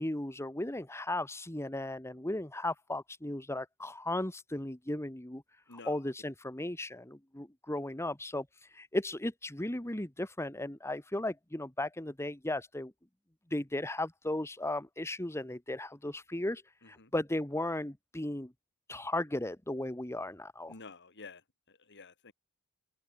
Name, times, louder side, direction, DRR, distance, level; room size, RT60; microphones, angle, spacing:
voice 1, 0.0-5.4 5.7-8.4 8.7-12.9 13.5-16.6 16.9-18.5 18.9-20.7, left 1 dB, 10° left, 1.4 m, -36 dB
voice 2, 20.7-21.4 21.9-22.3, left 4 dB, 55° left, 3.0 m, -49 dB
open air
head